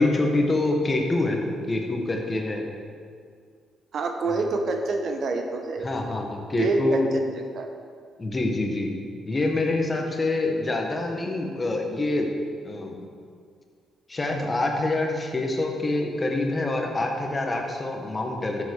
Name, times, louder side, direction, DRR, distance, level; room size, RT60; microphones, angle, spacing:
voice 1, 0.0-2.6 4.2-4.4 5.8-7.1 8.2-8.9 9.2-12.3 12.6-13.0 14.1-18.6, left 2 dB, 25° left, 2 dB, 1.7 m, -26 dB
voice 2, 3.9-5.9 6.6-7.7, right 3 dB, 60° right, 4 dB, 1.1 m, -27 dB
11.5 x 7.6 x 4.8 m, 2.1 s
cardioid pair, 90°, 0 cm